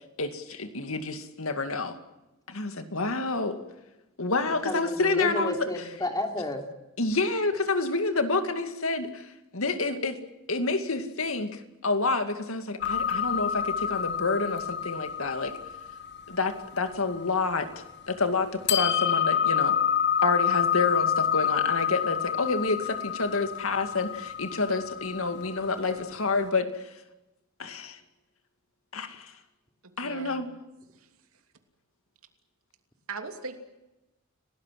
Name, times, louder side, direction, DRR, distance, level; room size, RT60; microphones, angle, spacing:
voice 1, 0.2-2.0 2.5-3.6 4.2-5.6 7.0-9.3 9.5-10.2 10.5-15.5 16.3-17.7 18.1-19.8 20.2-26.9 27.6-28.0 28.9-29.3 30.0-30.5, left 3 dB, 70° left, 8 dB, 2.3 m, -28 dB
voice 2, 4.6-6.6, left 1 dB, 20° left, 4 dB, 3.3 m, -31 dB
sound 1, 12.8-18.0 18.7-26.2, left 8 dB, 50° left, 1.3 m, -28 dB
voice 3, 30.0-30.6 30.9-31.1 33.1-33.6, right 4 dB, 80° right, 6 dB, 3.0 m, -40 dB
30.0 x 18.5 x 7.7 m, 0.99 s
head